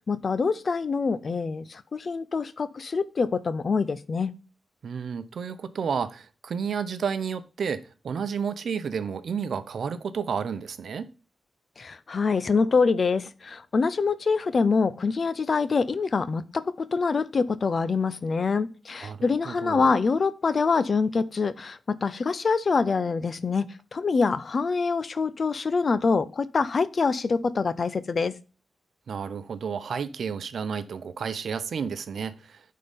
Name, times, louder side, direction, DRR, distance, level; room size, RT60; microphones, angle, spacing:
voice 1, 0.0-4.3 11.8-23.6 23.9-28.3, left 4 dB, 50° left, 0.6 m, -25 dB
voice 2, 4.8-11.1 19.0-19.9 29.1-32.6, right 6 dB, 75° right, 0.7 m, -31 dB
9.4 x 3.8 x 5.3 m
cardioid pair, 85°, 0 cm